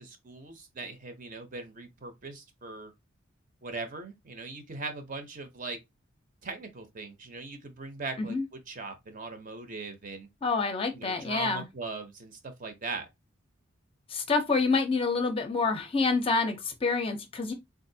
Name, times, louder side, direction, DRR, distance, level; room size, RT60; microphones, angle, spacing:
voice 1, 0.0-2.9 3.6-5.8 6.4-10.3 10.9-13.1, right 3 dB, 40° right, 0.7 m, -40 dB
voice 2, 10.4-11.6 14.1-17.5, left 4 dB, 25° left, 0.5 m, -27 dB
3.6 x 2.5 x 2.7 m
head